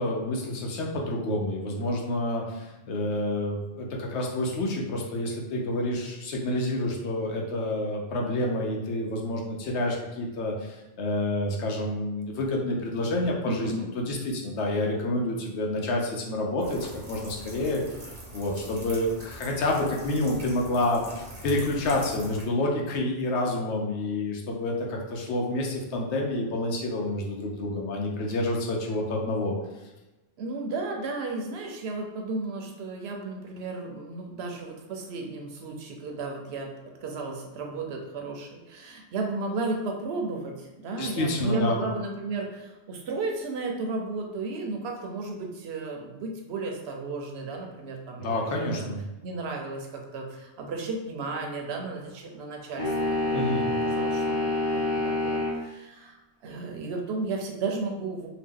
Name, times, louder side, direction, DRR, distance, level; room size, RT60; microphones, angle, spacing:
voice 1, 0.0-17.8 18.3-29.5 41.0-41.8 48.2-49.0 53.3-53.7, left 1 dB, 75° left, 0 dB, 0.9 m, -28 dB
voice 2, 13.5-13.9 30.4-48.8 49.2-58.3, right 3 dB, 70° right, 1 dB, 0.8 m, -34 dB
sound 1, 16.6-22.4, right 1 dB, 30° right, 0.7 m, -43 dB
sound 2, 52.8-55.6, left 2 dB, 35° left, 0.9 m, -27 dB
2.8 x 2.1 x 3.6 m, 1.0 s
omnidirectional pair, 1.2 m